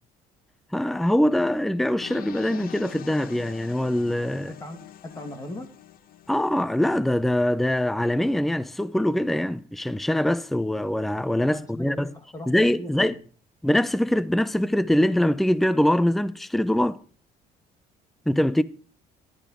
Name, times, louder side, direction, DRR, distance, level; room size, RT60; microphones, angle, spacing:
voice 1, 0.7-4.5 6.3-12.1 12.5-13.1 13.6-17.0 18.3-18.6, left 1 dB, ahead, 0.5 m, -23 dB
sound 1, 2.0-6.9, left 12 dB, 60° left, 0.8 m, -44 dB
voice 2, 4.5-5.7 11.4-13.2, left 1 dB, 20° left, 2.5 m, -39 dB
15.0 x 11.5 x 3.0 m
cardioid pair, 110°, 17 cm